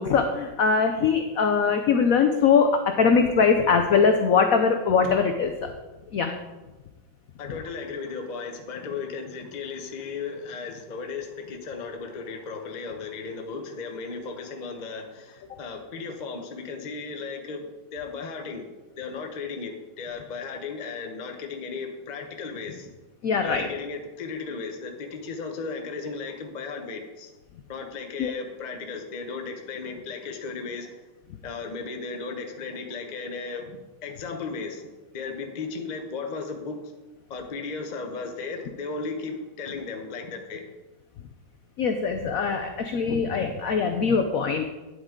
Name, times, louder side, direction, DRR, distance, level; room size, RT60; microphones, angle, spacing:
voice 1, 0.0-2.7 3.0-5.7 6.1-6.3 23.2-23.7 28.2-28.3 41.8-44.7, left 5 dB, 85° left, 6 dB, 0.7 m, -22 dB
voice 2, 7.4-17.6 17.9-18.7 19.0-22.9 23.4-27.3 27.7-30.9 31.4-34.8 35.1-36.8 37.3-40.6, left 4 dB, 50° left, 4 dB, 0.5 m, -35 dB
9.8 x 8.1 x 3.7 m, 1.2 s
omnidirectional pair, 2.3 m